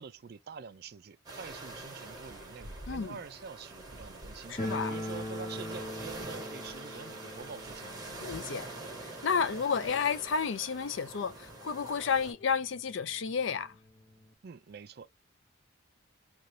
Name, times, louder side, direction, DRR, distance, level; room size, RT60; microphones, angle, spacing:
voice 1, 0.0-8.3 14.4-15.1, right 6 dB, 50° right, 0.4 m, -46 dB
sound 1, 1.3-12.3, right 2 dB, 20° right, 1.0 m, -45 dB
voice 2, 2.9-3.2 4.5-5.0 8.2-8.7 9.2-13.8, left 6 dB, 65° left, 0.4 m, -31 dB
sound 2, 4.6-11.3 11.5-11.6 11.9-12.0 12.7-12.8 13.1-14.3, left 1 dB, 35° left, 0.8 m, -42 dB
2.9 x 2.6 x 3.1 m
head